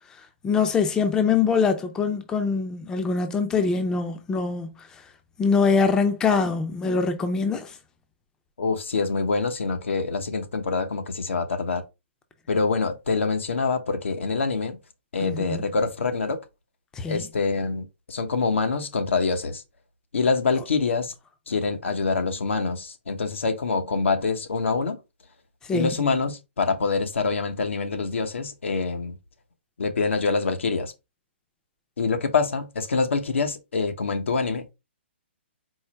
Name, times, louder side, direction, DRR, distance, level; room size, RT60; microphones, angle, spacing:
voice 1, 0.4-4.9 5.4-7.8 15.2-15.6 16.9-17.3 25.7-26.0, left 5 dB, 10° left, 0.5 m, -23 dB
voice 2, 8.6-11.8 12.5-14.8 15.1-16.4 17.1-19.6 20.1-21.1 21.5-25.0 25.7-29.2 29.8-30.9 32.0-34.7, left 4 dB, 85° left, 1.0 m, -25 dB
4.6 x 2.1 x 4.5 m
hypercardioid pair, 150°, 6 cm